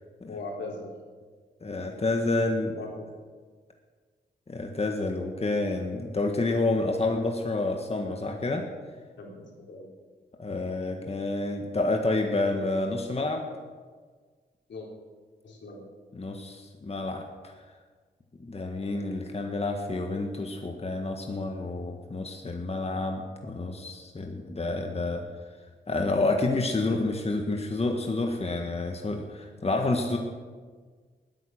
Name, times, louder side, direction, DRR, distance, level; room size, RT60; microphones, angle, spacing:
voice 1, 0.3-0.9 2.7-3.1 9.2-9.9 14.7-14.9 15.4-15.8, left 3 dB, 75° left, -1 dB, 3.7 m, -39 dB
voice 2, 1.6-2.7 4.5-8.7 10.4-13.5 16.1-17.5 18.4-25.2 25.9-30.2, left 2 dB, 35° left, 3 dB, 1.6 m, -29 dB
19.5 x 9.6 x 6.5 m, 1.5 s
cardioid pair, 70°, 19 cm